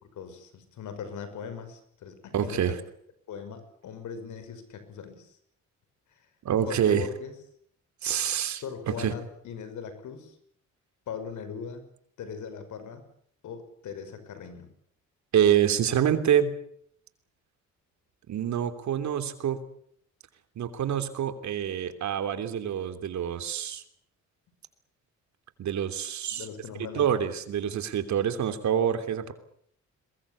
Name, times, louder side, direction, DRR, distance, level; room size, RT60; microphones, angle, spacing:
voice 1, 0.0-2.8 3.3-5.4 6.1-6.2 6.7-7.3 8.6-10.4 11.1-11.8 12.2-13.0 13.4-14.7 26.3-27.1, left 6 dB, 75° left, 11 dB, 5.8 m, -40 dB
voice 2, 2.3-2.8 6.4-7.1 8.0-9.1 15.3-16.6 18.3-19.6 20.5-23.8 25.6-26.5 26.9-29.3, right 9 dB, 65° right, 9 dB, 3.3 m, -26 dB
23.0 x 21.0 x 8.5 m, 0.65 s
cardioid pair, 90°, 30 cm